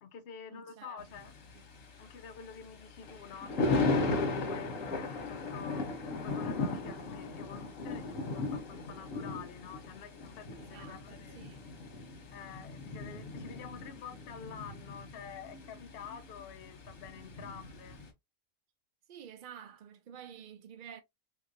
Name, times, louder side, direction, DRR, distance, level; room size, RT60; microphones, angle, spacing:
voice 1, 0.0-1.3 2.0-11.5 12.3-18.0, left 7 dB, 55° left, 0.7 m, -48 dB
voice 2, 0.5-1.1 1.5-1.9 10.6-11.6 19.1-21.0, right 9 dB, 70° right, 0.4 m, -50 dB
Thunder, 1.0-18.1, left 3 dB, 75° left, 1.3 m, -37 dB
3.7 x 2.6 x 2.5 m
omnidirectional pair, 1.4 m